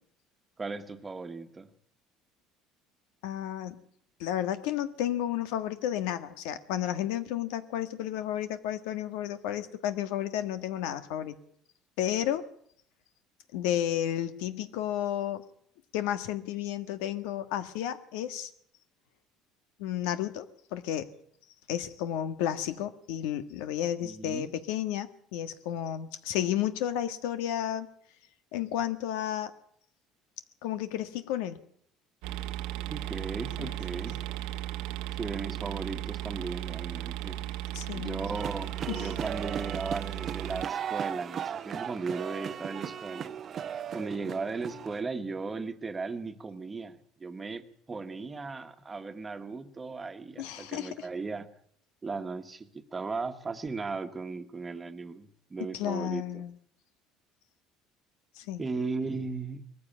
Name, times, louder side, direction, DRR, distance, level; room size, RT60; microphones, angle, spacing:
voice 1, 0.6-1.7 24.0-24.5 32.9-34.2 35.2-37.4 37.9-43.3 43.9-51.5 52.0-56.4 58.6-59.8, right 4 dB, 20° right, 9 dB, 1.5 m, -37 dB
voice 2, 3.2-3.8 4.2-11.3 12.0-12.4 13.5-15.4 15.9-18.5 19.8-20.5 20.7-21.1 21.7-27.9 28.5-29.5 30.6-31.6 33.6-33.7 37.7-38.2 38.9-39.1 50.4-51.1 55.7-56.5 58.4-58.6, left 11 dB, 90° left, 11 dB, 1.6 m, -32 dB
sound 1, 32.2-40.7, right 13 dB, 80° right, 1.2 m, -36 dB
sound 2, 38.3-45.0, right 8 dB, 40° right, 0.8 m, -37 dB
20.5 x 14.5 x 8.8 m, 0.64 s
cardioid pair, 120°, 0 cm